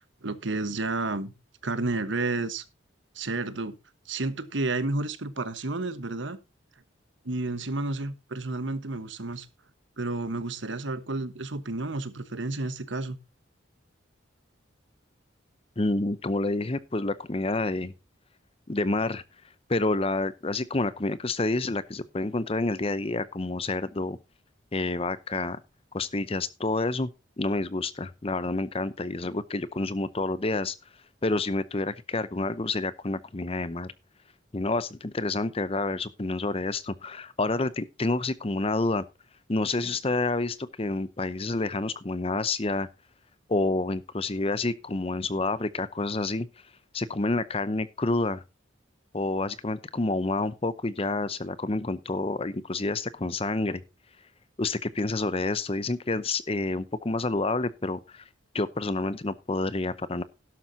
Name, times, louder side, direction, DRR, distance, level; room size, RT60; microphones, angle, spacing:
voice 1, 0.2-1.3 1.6-2.6 3.1-3.7 4.1-6.4 7.2-9.5 10.0-13.2, right 2 dB, 70° right, 1.2 m, -31 dB
voice 2, 15.8-17.9 18.7-19.2 19.7-24.2 24.7-25.6 25.9-27.1 27.4-30.8 31.2-33.9 34.5-39.0 39.5-42.9 43.5-46.5 46.9-48.4 49.1-53.8 54.6-58.2 58.5-60.2, left 2 dB, 30° left, 0.7 m, -28 dB
12.0 x 12.0 x 2.8 m
head